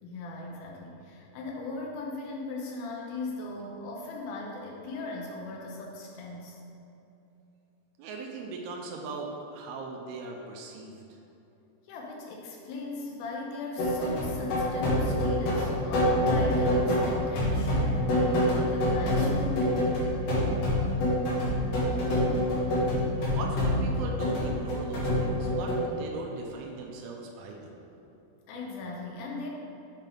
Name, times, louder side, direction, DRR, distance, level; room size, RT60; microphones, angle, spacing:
voice 1, 0.0-6.6 11.9-19.7 28.5-29.5, left 3 dB, 80° left, -2 dB, 2.2 m, -38 dB
voice 2, 8.0-11.2 23.3-27.8, right 3 dB, 80° right, 0 dB, 2.3 m, -39 dB
sound 1, 13.8-25.8, equal, 65° left, 2.3 m, -26 dB
7.5 x 4.5 x 3.5 m, 2.9 s
omnidirectional pair, 5.1 m